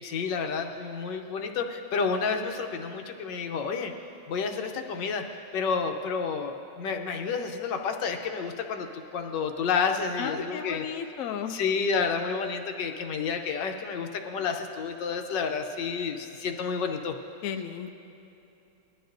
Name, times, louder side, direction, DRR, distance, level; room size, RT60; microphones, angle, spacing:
voice 1, 0.0-3.9 4.3-5.2 5.5-10.8 11.5-17.1, left 5 dB, 85° left, 4 dB, 1.5 m, -30 dB
voice 2, 10.2-11.6 17.4-17.9, left 8 dB, 65° left, 6 dB, 0.9 m, -34 dB
19.5 x 12.5 x 2.6 m, 2.9 s
omnidirectional pair, 1.9 m